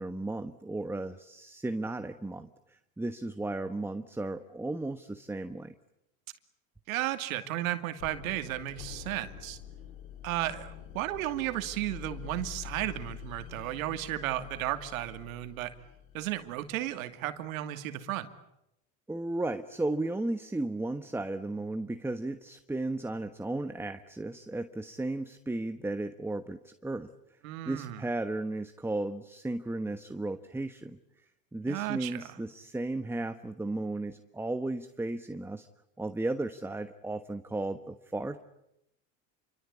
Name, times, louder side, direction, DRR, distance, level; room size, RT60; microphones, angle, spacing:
voice 1, 0.0-2.5 3.0-5.7 19.1-27.1 27.7-31.0 31.5-35.7 36.0-38.4, right 2 dB, 5° right, 9 dB, 1.2 m, -34 dB
voice 2, 6.9-9.6 10.2-15.7 16.1-18.3 27.4-28.0 31.7-32.4, right 14 dB, 85° right, 8 dB, 2.6 m, -34 dB
sound 1, 8.0-16.9, left 10 dB, 90° left, 2.8 m, -46 dB
28.5 x 24.5 x 8.5 m, 0.85 s
supercardioid pair, 105°, 40 cm